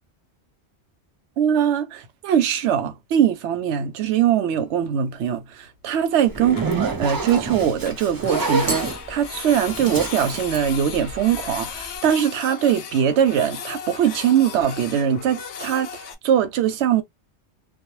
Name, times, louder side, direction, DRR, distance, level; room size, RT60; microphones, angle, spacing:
voice 1, 1.4-17.0, right 9 dB, 85° right, 0.9 m, -21 dB
Printer, 4.6-4.7 4.9-5.0 5.3-5.4 5.7-5.8 6.1-6.2 6.4-7.4 7.9-16.2, left 6 dB, 85° left, 0.9 m, -36 dB
Zipper (clothing), 6.3-11.5, right 4 dB, 25° right, 0.5 m, -27 dB
2.2 x 2.1 x 3.0 m
omnidirectional pair, 1.1 m